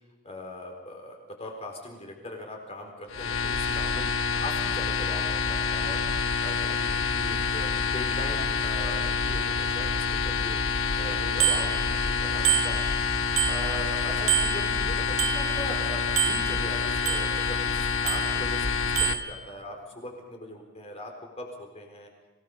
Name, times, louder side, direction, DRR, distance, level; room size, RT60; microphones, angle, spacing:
voice 1, 0.2-6.0 6.4-12.9 13.2-22.1, left 1 dB, 30° left, 2 dB, 4.3 m, -40 dB
sound 1, 3.1-19.1, left 5 dB, 65° left, 1.4 m, -27 dB
Bicycle bell, 11.4-12.1 12.4-14.0 14.3-15.8 16.2-17.6 18.1-18.6 19.0-19.3, right 10 dB, 80° right, 1.6 m, -29 dB
26.5 x 18.0 x 5.5 m, 1.2 s
head